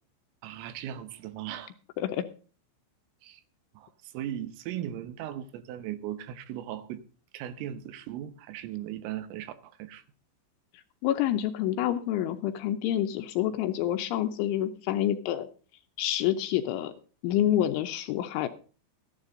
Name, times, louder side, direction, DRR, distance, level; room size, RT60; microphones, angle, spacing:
voice 1, 0.4-1.7 3.2-3.4 3.8-7.0 7.3-10.0, right 11 dB, 80° right, 3.5 m, -38 dB
voice 2, 11.0-15.5 16.0-16.9 17.2-18.5, left 12 dB, 80° left, 2.9 m, -27 dB
14.0 x 11.5 x 3.8 m
omnidirectional pair, 5.9 m